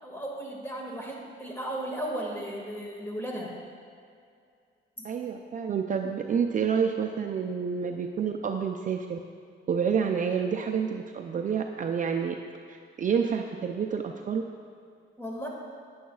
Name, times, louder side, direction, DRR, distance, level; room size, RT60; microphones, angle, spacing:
voice 1, 0.0-3.5 5.0-5.1 15.2-15.5, right 1 dB, 10° left, -2 dB, 2.0 m, -35 dB
voice 2, 5.0-9.2 9.7-12.4 12.7-14.4, right 6 dB, 40° right, 4 dB, 0.5 m, -28 dB
10.5 x 9.3 x 2.4 m, 2.3 s
cardioid pair, 90°, 20 cm